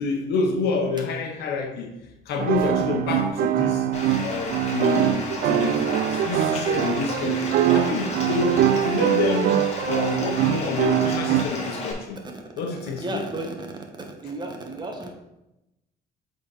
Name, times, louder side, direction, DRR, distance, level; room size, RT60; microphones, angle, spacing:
voice 1, 0.0-1.9 2.3-3.9 4.2-5.8 6.1-9.5 9.8-12.2 12.6-13.2, left 4 dB, 75° left, 3 dB, 1.0 m, -27 dB
sound 1, 2.4-11.4, right 10 dB, 60° right, 0.4 m, -23 dB
Bathtub (filling or washing), 3.9-11.9, left 2 dB, 40° left, 1.8 m, -33 dB
voice 2, 13.0-13.8 14.1-15.1, right 2 dB, 25° right, 2 dB, 1.4 m, -34 dB
7.8 x 4.1 x 4.1 m, 0.92 s
cardioid pair, 110°, 17 cm